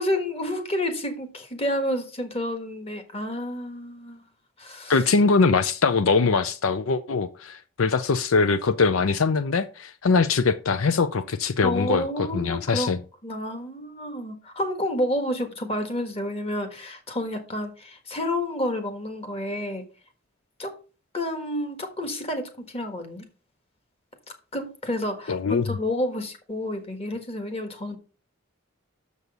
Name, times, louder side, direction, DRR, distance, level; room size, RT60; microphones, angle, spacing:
voice 1, 0.0-4.3 4.6-5.0 11.6-12.9 13.2-19.8 20.6-20.7 21.1-23.2 24.3-28.0, left 1 dB, 30° left, 1.5 m, -30 dB
voice 2, 4.9-13.0 25.3-25.7, left 4 dB, 80° left, 0.5 m, -22 dB
6.9 x 6.3 x 5.3 m
head